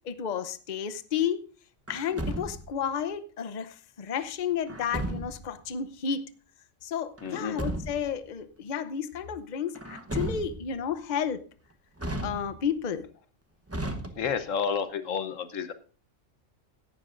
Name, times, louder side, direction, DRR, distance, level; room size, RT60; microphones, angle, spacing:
voice 1, 0.0-1.4 1.9-6.2 6.8-11.4 12.2-13.1, left 8 dB, 40° left, 13 dB, 0.8 m, -32 dB
Truck, 1.9-2.8 4.7-5.5 7.2-8.2 9.7-10.8 12.0-12.8 13.7-14.6, right 1 dB, 15° right, 0.9 m, -35 dB
voice 2, 7.2-7.6 14.1-15.7, left 6 dB, 90° left, 11 dB, 1.4 m, -30 dB
17.0 x 12.0 x 2.5 m, 0.37 s
omnidirectional pair, 1.3 m